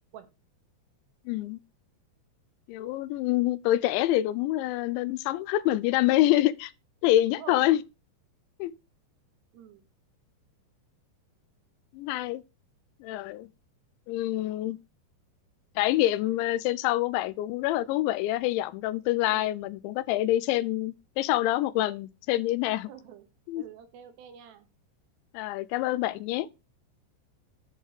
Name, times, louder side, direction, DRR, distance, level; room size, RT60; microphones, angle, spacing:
voice 1, 1.3-1.6 2.7-6.7 7.0-7.8 8.6-8.7 11.9-12.4 13.0-13.5 14.1-14.8 15.8-22.9 23.5-23.6 25.3-26.5, left 15 dB, 85° left, 2.9 m, -26 dB
voice 2, 7.3-7.8 9.5-9.8 19.3-19.7 22.9-23.3 23.5-24.7, right 8 dB, 75° right, 3.0 m, -48 dB
7.0 x 6.5 x 4.9 m
omnidirectional pair, 5.2 m